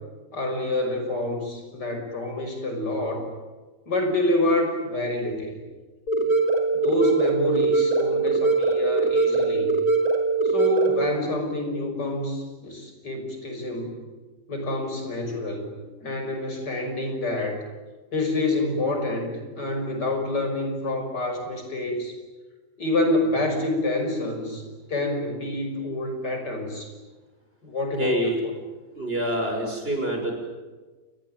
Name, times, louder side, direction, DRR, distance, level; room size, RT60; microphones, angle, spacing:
voice 1, 0.3-3.3 3.9-5.6 6.7-9.7 10.4-14.0 14.5-15.7 16.0-17.6 18.1-22.1 22.8-24.6 24.9-26.9 27.6-28.3, left 2 dB, 85° left, 4 dB, 6.5 m, -27 dB
sound 1, 6.1-11.1, right 3 dB, 60° left, 4.3 m, -22 dB
voice 2, 28.0-28.4 28.9-30.3, right 1 dB, 35° right, 3 dB, 6.9 m, -26 dB
29.0 x 22.5 x 9.2 m, 1.3 s
omnidirectional pair, 1.8 m